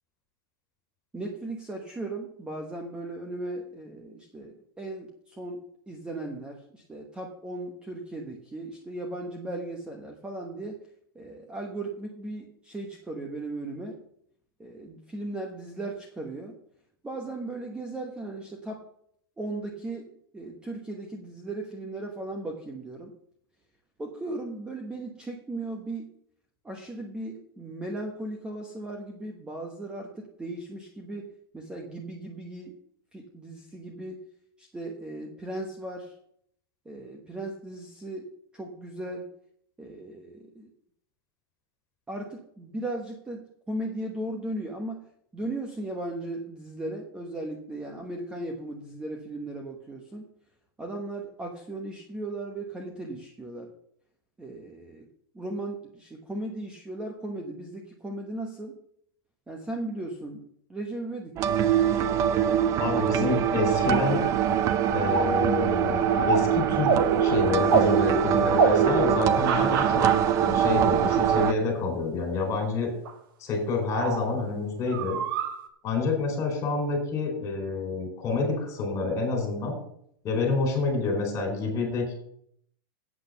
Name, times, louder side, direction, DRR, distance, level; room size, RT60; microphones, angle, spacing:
voice 1, 1.1-10.8 11.1-14.0 14.6-16.6 17.0-18.8 19.4-20.1 20.3-23.1 24.0-26.1 26.6-31.3 31.5-32.8 33.1-34.2 34.6-36.1 36.8-39.3 39.8-40.7 42.1-45.0 45.3-50.3 50.8-53.7 54.4-55.1 55.3-58.8 59.5-60.4 60.7-61.6, right 2 dB, 10° right, 1 dB, 1.0 m, -37 dB
sound 1, 61.4-71.5, right 9 dB, 25° right, 0.5 m, -24 dB
voice 2, 62.8-64.2 64.9-66.9 67.2-70.0 70.4-72.9 73.4-75.2 75.8-79.8 80.2-82.1, left 4 dB, 25° left, 2 dB, 4.2 m, -28 dB
sound 2, 63.6-64.2 64.8-65.4 65.9-70.3 72.3-72.4 73.1-73.2 73.9-74.4 74.9-75.7, right 4 dB, 70° right, 1.6 m, -27 dB
8.4 x 7.6 x 6.7 m, 0.68 s
supercardioid pair, 155°, 12 cm